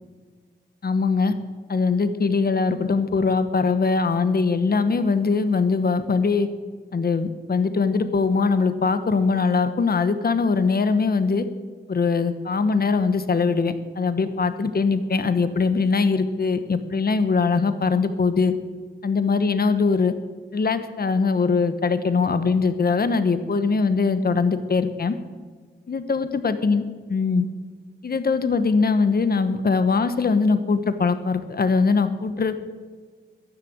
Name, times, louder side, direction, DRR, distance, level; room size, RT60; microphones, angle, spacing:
voice 1, 0.8-1.3 1.7-6.5 6.9-11.4 11.9-18.5 19.0-20.1 20.5-25.1 25.9-26.8 27.1-27.5 28.0-32.6, left 4 dB, 55° left, 11 dB, 1.1 m, -21 dB
14.5 x 11.0 x 7.8 m, 1.5 s
wide cardioid pair, 85°, 18 cm